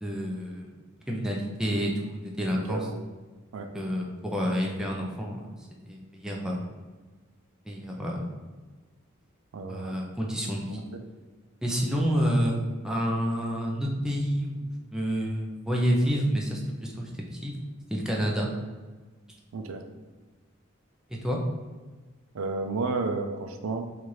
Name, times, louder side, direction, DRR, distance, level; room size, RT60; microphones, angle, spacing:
voice 1, 0.0-0.7 1.1-2.9 3.7-5.4 5.8-6.7 7.7-8.2 9.7-10.9 11.6-12.6 12.8-17.5 17.9-18.5 21.2-21.4, equal, 5° right, -2 dB, 0.5 m, -29 dB
voice 2, 9.5-10.0 19.5-19.8 22.3-23.9, right 3 dB, 75° right, 6 dB, 0.4 m, -31 dB
4.3 x 2.5 x 3.1 m, 1.3 s
head